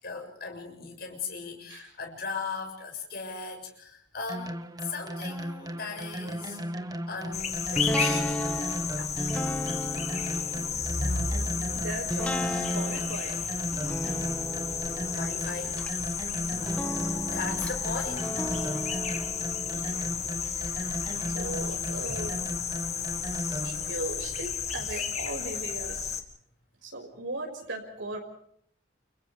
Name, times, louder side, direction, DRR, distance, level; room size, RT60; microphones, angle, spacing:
voice 1, 0.0-4.6 4.8-6.6 7.1-8.4 8.9-9.1 10.8-11.8 15.1-15.8 17.1-18.4 22.1-22.2 24.8-25.1, left 3 dB, 55° left, 3 dB, 7.0 m, -36 dB
sound 1, 4.3-23.9, equal, 20° right, 1.2 m, -37 dB
sound 2, 7.3-26.2, left 7 dB, 35° left, 1.8 m, -33 dB
sound 3, 7.7-20.7 21.1-21.2, equal, 5° left, 1.5 m, -35 dB
voice 2, 11.7-13.4 13.9-14.2 14.8-15.0 19.7-19.9 20.4-22.3 23.6-26.2 26.8-28.2, right 2 dB, 85° right, 1 dB, 5.9 m, -38 dB
30.0 x 29.5 x 3.5 m, 0.66 s
head